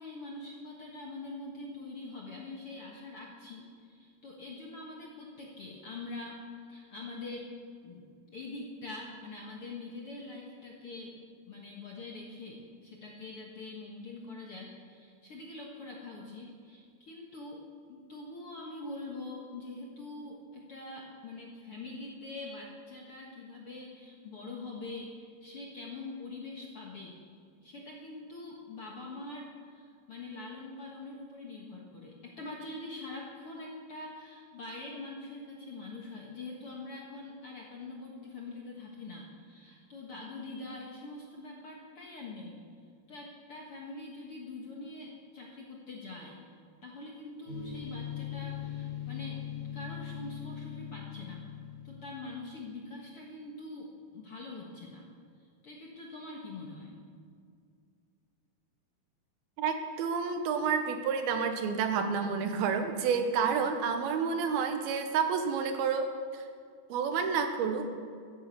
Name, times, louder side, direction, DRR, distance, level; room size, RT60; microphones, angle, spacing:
voice 1, 0.0-6.4 6.7-7.5 7.8-8.1 8.3-27.2 27.6-42.6 43.1-46.6 46.8-49.4 49.7-51.4 51.8-55.0 55.6-56.9, left 2 dB, 55° left, -1 dB, 1.6 m, -44 dB
sound 1, 47.5-52.3, left 9 dB, 35° right, 4.8 m, -40 dB
voice 2, 59.6-66.5 66.9-67.9, right 6 dB, 80° right, 6 dB, 3.0 m, -29 dB
15.0 x 9.5 x 6.8 m, 2.2 s
omnidirectional pair, 4.3 m